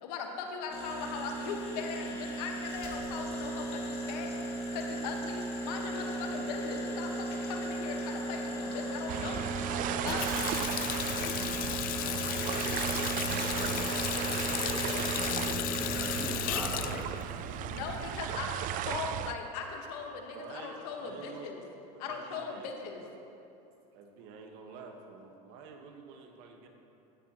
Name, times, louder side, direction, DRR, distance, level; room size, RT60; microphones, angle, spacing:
voice 1, 0.0-4.3 4.7-9.6 10.0-10.3 17.7-21.6 22.0-23.0, left 5 dB, 75° left, 2 dB, 1.6 m, -39 dB
sound 1, 0.7-16.3, right 1 dB, 30° left, 2.3 m, -37 dB
sound 2, 9.1-19.3, right 12 dB, 40° right, 0.4 m, -35 dB
Water tap faucet, 9.9-18.3, left 12 dB, 45° left, 0.6 m, -35 dB
voice 2, 14.1-14.6 15.7-17.2, right 2 dB, 10° right, 1 dB, 0.8 m, -42 dB
voice 3, 20.3-21.7 21.9-22.7 23.9-26.7, right 5 dB, 65° right, 3 dB, 1.5 m, -48 dB
16.0 x 9.4 x 3.1 m, 2.8 s
supercardioid pair, 105°, 20 cm